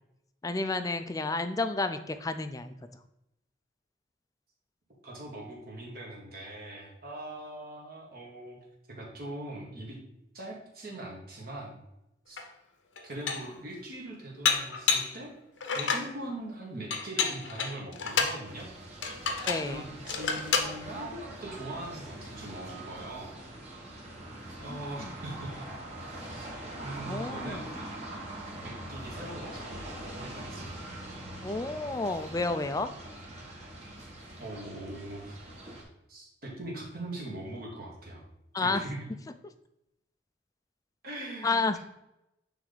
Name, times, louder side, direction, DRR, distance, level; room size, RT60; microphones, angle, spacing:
voice 1, 0.4-2.7 19.5-19.8 24.7-25.1 27.0-27.7 31.4-32.9 38.5-38.8 41.4-41.8, left 3 dB, 20° left, 10 dB, 0.4 m, -31 dB
voice 2, 5.0-8.6 8.9-10.0 10.3-11.8 12.3-12.4 13.0-15.3 15.7-18.7 19.0-19.2 19.7-23.3 24.6-25.7 26.1-26.5 26.8-27.6 28.6-29.9 30.2-30.9 34.4-35.4 36.1-38.2 38.6-39.1 41.0-41.8, right 1 dB, 55° right, -2 dB, 2.0 m, -41 dB
Dishes pots and pans, 12.4-12.5 13.0-13.6 14.4-15.2 15.6-16.1 16.9-18.4 19.0-19.7 20.1-20.7, left 5 dB, 85° left, 0.8 m, -29 dB
sound 1, 18.4-35.8, right 1 dB, 35° right, 1.5 m, -43 dB
9.0 x 3.5 x 3.9 m, 0.86 s
head